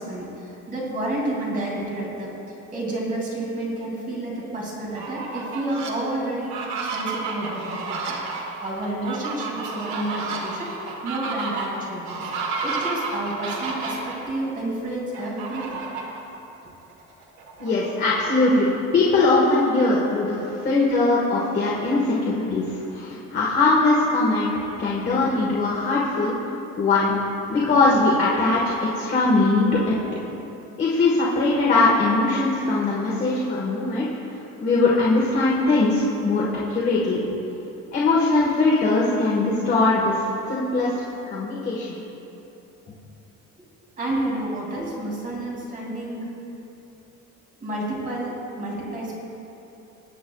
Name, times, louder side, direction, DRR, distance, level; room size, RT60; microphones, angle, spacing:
voice 1, 0.0-2.3 2.7-8.1 8.6-10.7 11.0-12.3 12.6-15.8 44.0-46.3 47.6-49.2, right 1 dB, 30° right, -4 dB, 2.5 m, -30 dB
Fowl, 4.8-5.9 6.4-14.2 15.1-16.2 16.6-16.7 17.1-18.8, right 4 dB, 75° right, 1.8 m, -31 dB
voice 2, 17.6-24.5 24.8-26.3 26.8-27.2 27.5-28.6 28.9-30.0 30.8-34.1 34.6-37.2 37.9-40.2 40.5-40.9 41.3-42.0, left 3 dB, 35° left, -6 dB, 1.4 m, -21 dB
21.5 x 9.1 x 2.3 m, 3.0 s
cardioid pair, 175°, 29 cm